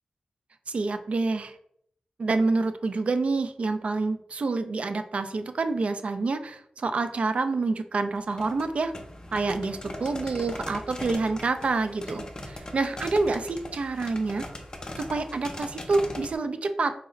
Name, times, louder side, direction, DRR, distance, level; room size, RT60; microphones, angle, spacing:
voice 1, 0.7-1.5 2.2-8.9 9.3-14.5 15.0-16.9, right 3 dB, 55° right, 9 dB, 0.3 m, -27 dB
sound 1, 8.2-16.4, left 1 dB, 30° left, 0.5 m, -40 dB
3.9 x 2.1 x 3.8 m, 0.69 s
wide cardioid pair, 115°, 2 cm